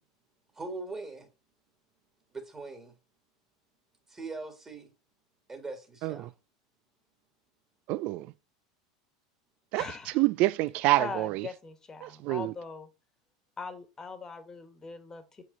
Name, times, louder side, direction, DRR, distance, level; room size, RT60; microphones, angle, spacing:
voice 1, 0.5-1.3 2.3-3.0 4.1-4.9 5.5-6.3, right 3 dB, 20° right, 1.8 m, -41 dB
voice 2, 7.9-8.3 9.7-9.9 10.1-11.5 12.0-12.5, right 18 dB, 50° right, 0.3 m, -27 dB
voice 3, 9.8-10.2 11.0-12.9 13.6-15.4, left 4 dB, 20° left, 1.4 m, -41 dB
7.0 x 4.8 x 3.9 m
hypercardioid pair, 85°, 3 cm